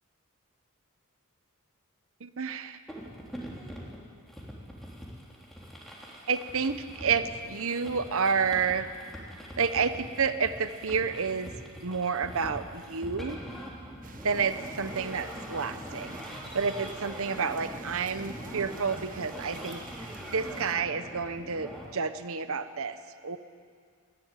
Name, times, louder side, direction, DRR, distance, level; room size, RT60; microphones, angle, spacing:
voice 1, 2.2-2.8 6.3-8.9 9.6-11.5 11.8-13.4 14.2-23.0 23.2-23.4, right 5 dB, 65° right, 11 dB, 1.0 m, -30 dB
sound 1, 2.9-21.8, equal, ahead, 3.5 m, -43 dB
sound 2, 14.0-20.7, right 3 dB, 40° right, 1.2 m, -48 dB
19.5 x 15.0 x 9.2 m, 2.1 s
head